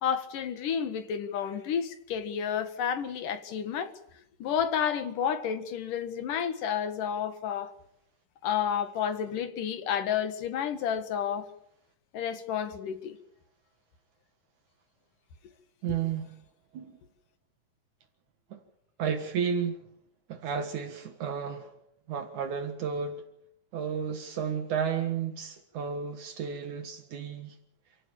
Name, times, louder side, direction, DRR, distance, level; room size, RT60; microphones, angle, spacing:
voice 1, 0.0-3.9 4.4-7.7 8.4-11.5 12.1-13.2, left 8 dB, 90° left, 3.4 m, -31 dB
voice 2, 15.8-16.3 16.7-16.9 18.5-18.6 19.0-19.8 20.3-21.7 22.1-23.2 23.7-27.6, right 7 dB, 70° right, 3.0 m, -32 dB
28.5 x 17.0 x 7.3 m
omnidirectional pair, 3.6 m